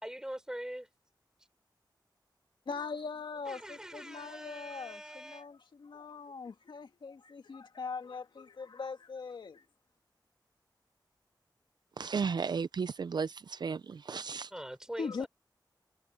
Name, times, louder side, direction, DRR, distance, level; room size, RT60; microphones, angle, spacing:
voice 1, 0.0-0.9 3.5-5.4 14.5-15.3, right 1 dB, 10° right, 5.1 m, -43 dB
voice 2, 2.7-9.6 15.0-15.3, left 5 dB, 75° left, 2.0 m, -41 dB
voice 3, 12.0-14.5, right 5 dB, 65° right, 0.5 m, -34 dB
wide cardioid pair, 100°, 8 cm